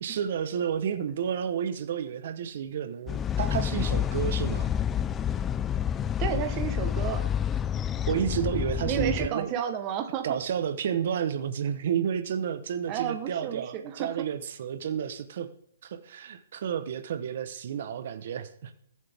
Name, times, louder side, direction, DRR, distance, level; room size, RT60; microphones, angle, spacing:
voice 1, 0.0-4.7 8.0-9.5 10.2-15.5 15.8-18.7, right 8 dB, 50° right, 10 dB, 1.0 m, -31 dB
sound 1, 3.1-9.3, left 9 dB, 10° left, 0.3 m, -28 dB
voice 2, 6.2-7.3 8.9-10.4 12.9-14.1, right 9 dB, 20° right, 6 dB, 1.0 m, -32 dB
20.5 x 7.7 x 3.5 m, 0.73 s
hypercardioid pair, 165°, 0 cm